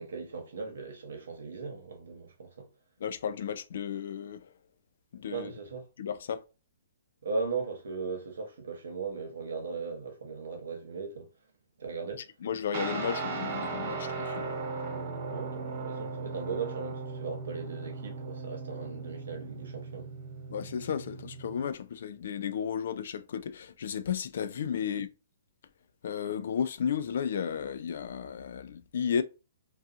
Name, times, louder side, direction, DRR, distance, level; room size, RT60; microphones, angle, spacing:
voice 1, 0.0-2.7 5.3-5.9 7.2-11.3 11.8-12.2 14.9-20.1 24.8-24.9, right 4 dB, 80° right, 1.0 m, -38 dB
voice 2, 3.0-4.5 5.1-5.5 6.0-6.4 12.4-14.5 20.5-25.1 26.0-29.2, left 8 dB, 60° left, 0.3 m, -33 dB
Guitar, 12.7-21.7, right 4 dB, 40° right, 1.0 m, -37 dB
2.7 x 2.3 x 2.4 m
hypercardioid pair, 165°, 0 cm